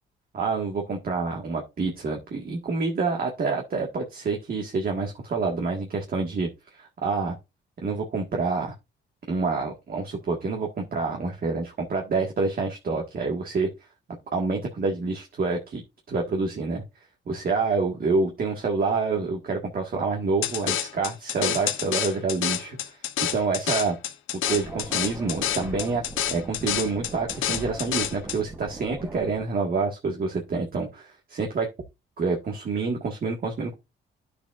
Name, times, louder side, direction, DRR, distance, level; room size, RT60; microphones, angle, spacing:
voice 1, 0.3-6.5 6.8-7.4 7.8-8.7 9.3-13.7 14.3-15.8 16.1-16.8 17.3-24.0 24.5-26.0 26.3-31.7 32.2-33.8, right 4 dB, 50° right, 1 dB, 1.7 m, -27 dB
sound 1, 20.4-28.4, left 11 dB, 85° left, 0.9 m, -28 dB
sound 2, 24.5-29.4, right 2 dB, 15° right, 1.0 m, -40 dB
10.0 x 6.8 x 2.5 m, 0.24 s
cardioid pair, 90°, 20 cm